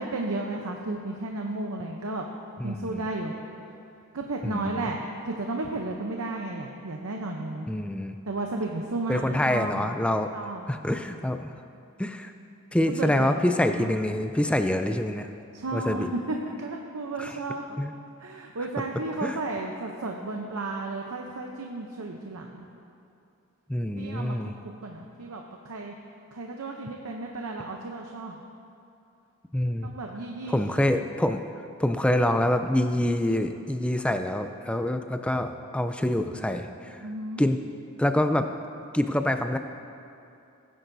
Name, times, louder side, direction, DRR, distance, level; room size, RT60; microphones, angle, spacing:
voice 1, 0.0-2.2 2.6-3.3 4.1-7.7 8.3-9.9 10.3-10.7 12.9-13.5 13.8-14.0 15.5-17.8 18.2-22.7 24.0-24.5 24.8-25.9 26.3-28.4 29.8-30.6 37.0-37.5, right 2 dB, 80° right, 1 dB, 0.7 m, -33 dB
voice 2, 2.6-3.1 4.4-4.9 7.7-8.2 9.1-10.3 10.7-11.5 12.0-12.3 12.7-15.3 15.7-16.1 17.2-17.4 17.8-17.9 19.2-19.4 23.7-24.5 29.5-29.9 30.5-31.4 31.8-37.0 37.4-37.6 38.0-38.5 38.9-39.6, left 1 dB, 5° left, 7 dB, 0.3 m, -26 dB
18.0 x 10.0 x 2.7 m, 2.6 s
head